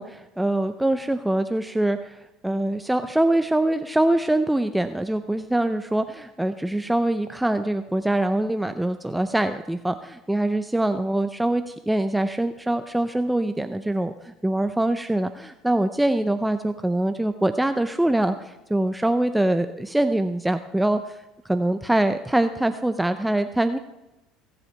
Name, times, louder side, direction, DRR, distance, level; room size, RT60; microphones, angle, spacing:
voice 1, 0.0-2.2 2.4-21.2 21.4-23.8, right 1 dB, 5° right, 9 dB, 0.6 m, -24 dB
17.0 x 7.8 x 4.6 m, 0.97 s
hypercardioid pair, 70°, 0 cm